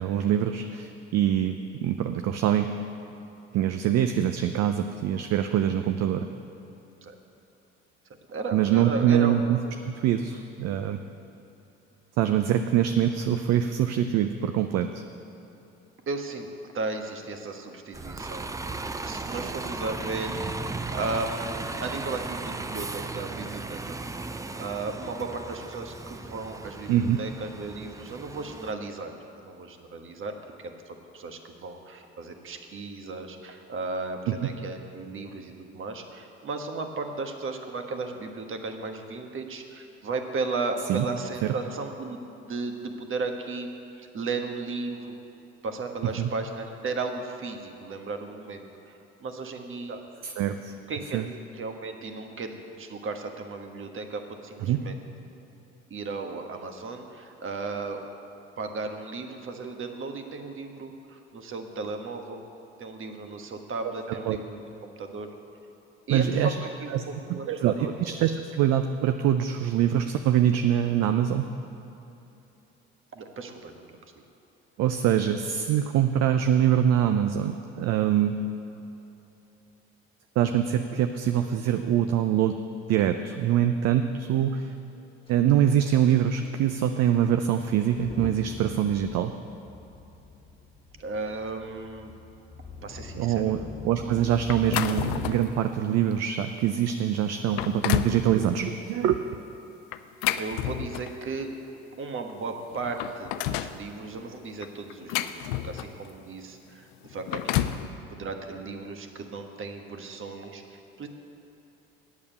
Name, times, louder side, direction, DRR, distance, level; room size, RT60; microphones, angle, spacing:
voice 1, 0.0-2.7 3.5-6.3 8.5-9.6 9.8-11.0 12.2-15.0 26.9-27.2 34.3-34.4 40.9-41.0 46.2-46.3 50.2-50.7 51.1-51.2 54.6-54.8 64.1-64.4 66.1-66.6 66.9-67.0 67.3-67.7 68.0-71.5 74.8-78.4 80.4-82.6 82.9-84.7 85.3-89.3 93.2-93.6 93.8-99.2, right 10 dB, 60° right, 7 dB, 0.6 m, -24 dB
voice 2, 8.3-9.3 16.1-16.5 16.7-18.8 19.0-20.4 20.9-21.5 21.8-24.3 24.5-29.1 29.4-43.7 43.9-45.2 45.6-50.0 50.9-51.3 51.5-55.0 55.9-58.0 58.6-62.4 62.8-65.3 66.1-67.9 73.1-74.0 91.0-92.1 92.8-93.7 100.4-101.5 102.0-107.7 108.1-111.1, right 3 dB, 45° right, 5 dB, 1.3 m, -35 dB
Bus, 17.9-28.7, right 3 dB, 10° right, 0.5 m, -36 dB
Motor vehicle (road) / Engine starting / Accelerating revving vroom, 85.3-85.4 85.6-85.8 86.4-86.5 87.8-95.6, left 2 dB, 20° left, 1.9 m, -43 dB
sound 1, 94.5-95.5 96.1-96.3 96.9-97.0 97.4-98.2 99.9-101.2 102.3-102.4 102.7-103.8 104.6-106.1 107.0-107.9, left 13 dB, 80° left, 0.5 m, -30 dB
8.5 x 7.3 x 8.2 m, 2.9 s
hypercardioid pair, 65°, 30 cm